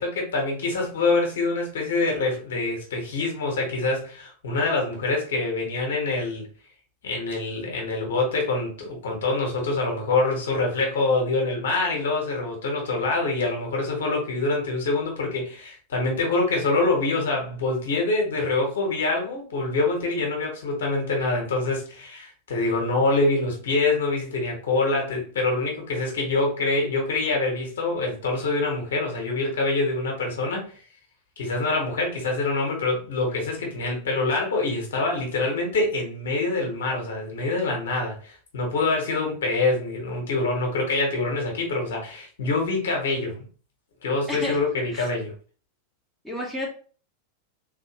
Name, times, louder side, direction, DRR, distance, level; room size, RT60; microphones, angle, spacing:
voice 1, 0.0-6.5 7.0-30.7 31.4-43.4 44.0-45.3, left 3 dB, 60° left, 1 dB, 1.2 m, -25 dB
voice 2, 44.3-44.6 44.9-45.1 46.2-46.7, left 1 dB, ahead, -3 dB, 1.1 m, -31 dB
3.7 x 3.0 x 2.9 m, 0.40 s
figure-of-eight pair, 90°, 0 cm